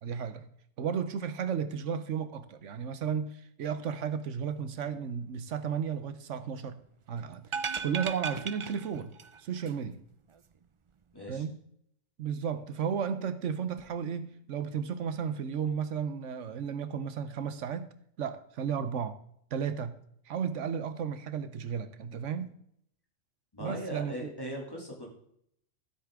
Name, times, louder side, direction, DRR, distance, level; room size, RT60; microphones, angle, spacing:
voice 1, 0.0-0.5 0.8-6.8 7.1-7.5 7.8-10.0 11.3-11.6 12.2-17.9 18.2-19.2 19.5-20.0 20.3-22.5 23.6-24.3, right 7 dB, 80° right, 1.1 m, -34 dB
sound 1, 7.4-9.4 9.7-9.8, right 5 dB, 55° right, 0.3 m, -36 dB
voice 2, 11.1-11.4 23.5-25.1, equal, 20° left, 2.8 m, -39 dB
13.5 x 8.1 x 3.6 m
omnidirectional pair, 1.2 m